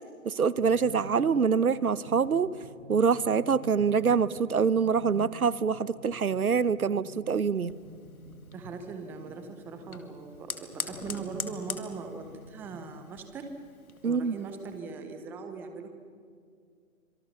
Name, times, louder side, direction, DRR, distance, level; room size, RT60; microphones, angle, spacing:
voice 1, 0.2-2.5 2.9-7.7 14.0-14.4, right 6 dB, 90° right, 18 dB, 1.0 m, -25 dB
sound 1, 0.6-12.8, right 1 dB, 65° right, 5.1 m, -48 dB
Fire, 7.5-14.8, left 4 dB, 85° left, 2.7 m, -44 dB
voice 2, 8.5-13.5 14.0-15.9, right 4 dB, 5° right, 7 dB, 0.7 m, -40 dB
26.0 x 25.0 x 6.6 m, 2.2 s
hypercardioid pair, 145°, 42 cm